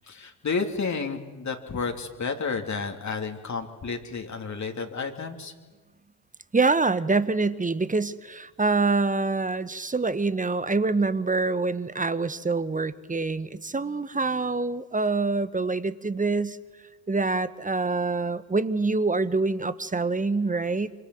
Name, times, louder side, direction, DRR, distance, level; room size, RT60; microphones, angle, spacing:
voice 1, 0.1-5.5, left 4 dB, 35° left, 3 dB, 3.2 m, -31 dB
voice 2, 6.5-16.6 17.1-20.9, right 3 dB, 15° right, 15 dB, 1.3 m, -25 dB
26.0 x 25.5 x 7.9 m, 1.3 s
hypercardioid pair, 60°, 47 cm